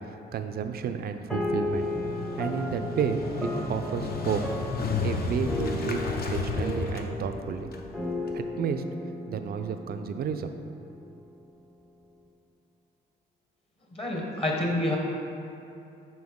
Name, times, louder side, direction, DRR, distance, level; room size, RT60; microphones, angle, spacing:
voice 1, 0.3-1.9 2.4-4.4 5.0-7.7 8.3-8.8 9.3-10.5, right 7 dB, 50° right, 8 dB, 0.4 m, -31 dB
sound 1, 1.3-11.0, left 2 dB, ahead, 0.6 m, -35 dB
Motorcycle, 1.6-8.4, left 4 dB, 50° left, 0.6 m, -33 dB
voice 2, 13.9-15.0, left 1 dB, 30° left, -1 dB, 1.0 m, -28 dB
6.2 x 4.4 x 3.6 m, 2.8 s
cardioid pair, 90°, 20 cm